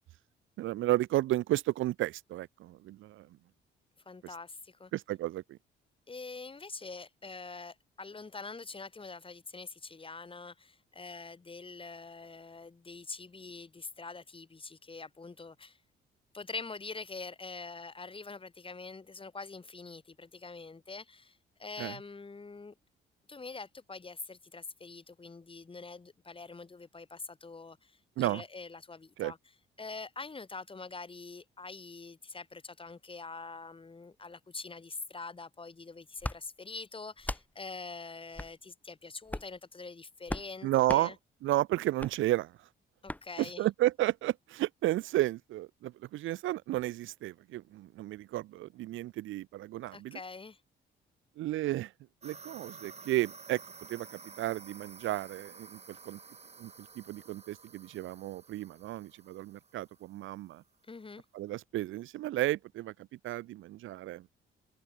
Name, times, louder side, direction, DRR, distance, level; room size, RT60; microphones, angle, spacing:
voice 1, 0.6-3.3 4.9-5.6 21.8-21.9 28.2-28.4 29.2-29.3 40.6-41.1 41.4-42.5 43.4-50.2 51.4-51.9 52.2-53.6 53.9-56.2 56.6-60.6 61.3-62.9 63.2-64.3, right 15 dB, 80° right, 0.9 m, -32 dB
voice 2, 4.0-4.9 6.1-15.8 16.3-22.7 23.3-29.4 29.8-41.2 43.0-43.7 49.9-50.6 60.9-61.2, left 4 dB, 25° left, 4.8 m, -45 dB
sound 1, 36.2-36.4 37.2-37.5 38.3-38.5 39.3-39.6 40.3-40.5 40.9-41.1 42.0-42.1 43.1-43.2, left 1 dB, 10° left, 3.5 m, -37 dB
sound 2, 52.2-60.4, right 5 dB, 35° right, 4.6 m, -52 dB
open air
cardioid pair, 90°, 20 cm